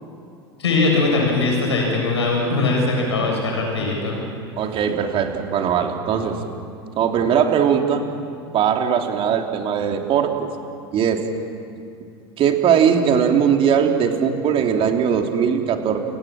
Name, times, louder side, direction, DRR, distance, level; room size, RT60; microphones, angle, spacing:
voice 1, 0.6-4.2, left 3 dB, 85° left, -1 dB, 7.2 m, -20 dB
voice 2, 4.6-6.4 7.0-8.0 8.5-10.3 10.9-11.2 12.4-16.0, right 7 dB, 40° right, 3 dB, 3.1 m, -19 dB
29.5 x 18.0 x 7.6 m, 2.4 s
hypercardioid pair, 85°, 14 cm